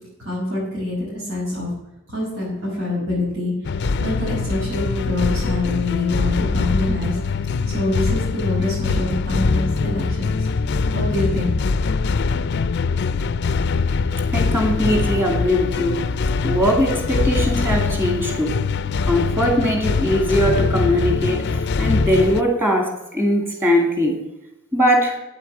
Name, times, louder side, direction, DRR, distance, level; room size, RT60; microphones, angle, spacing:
voice 1, 0.2-1.7 2.1-7.2 7.7-10.4 10.9-11.5, left 2 dB, 75° right, -6 dB, 5.7 m, -25 dB
sound 1, 3.6-22.4, left 4 dB, 55° left, 0.4 m, -22 dB
voice 2, 14.3-16.0 16.4-18.5 19.0-24.2 24.7-25.2, equal, 10° right, 2 dB, 2.5 m, -20 dB
9.6 x 8.1 x 7.5 m, 0.94 s
head